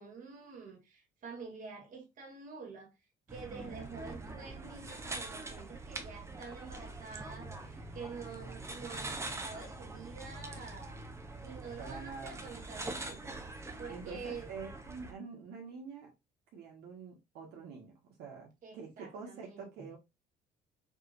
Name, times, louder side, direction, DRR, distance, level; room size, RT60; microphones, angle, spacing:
voice 1, 0.0-2.9 3.3-11.0 11.4-13.3 13.8-14.5 18.6-20.0, right 4 dB, 50° right, 2.1 m, -48 dB
sound 1, 3.3-15.1, right 2 dB, 15° right, 0.8 m, -44 dB
voice 2, 3.6-4.0 11.8-12.4 13.9-16.1 16.5-20.0, right 5 dB, 80° right, 1.4 m, -46 dB
5.3 x 3.0 x 2.6 m
cardioid pair, 110°, 17 cm